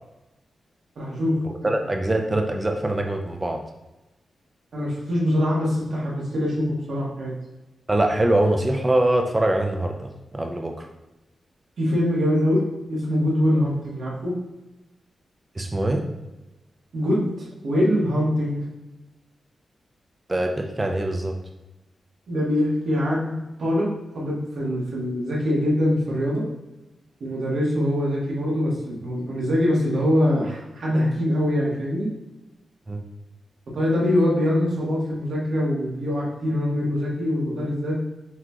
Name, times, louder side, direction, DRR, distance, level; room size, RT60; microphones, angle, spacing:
voice 1, 1.0-1.3 4.7-7.3 11.8-12.6 12.9-14.3 16.9-17.3 17.6-18.6 22.3-23.9 24.1-26.4 27.2-32.1 33.7-38.0, left 1 dB, 70° right, -5 dB, 1.3 m, -23 dB
voice 2, 1.6-3.6 7.9-10.9 15.6-16.0 20.3-21.3 32.9-33.0, right 1 dB, 20° right, 3 dB, 0.4 m, -23 dB
6.0 x 2.9 x 2.3 m, 1.0 s
wide cardioid pair, 125°, 0 cm